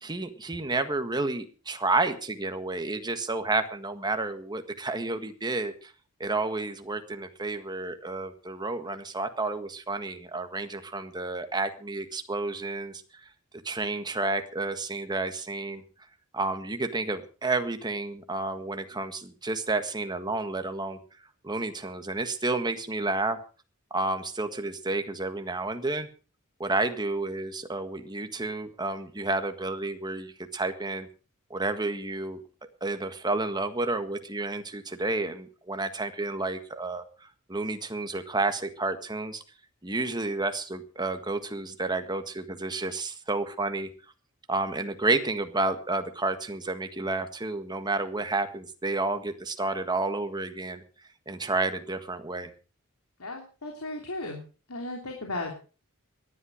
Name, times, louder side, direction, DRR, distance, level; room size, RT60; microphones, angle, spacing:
voice 1, 0.0-5.9 6.2-13.3 13.6-15.8 16.3-21.0 21.4-23.4 23.9-26.1 26.6-31.1 31.5-32.4 32.8-39.4 39.8-43.9 44.5-50.8 51.3-52.5, right 2 dB, 20° right, 8 dB, 1.6 m, -30 dB
voice 2, 53.2-54.4 54.7-55.6, left 2 dB, 90° left, 2 dB, 3.2 m, -35 dB
18.0 x 11.5 x 5.0 m, 0.37 s
head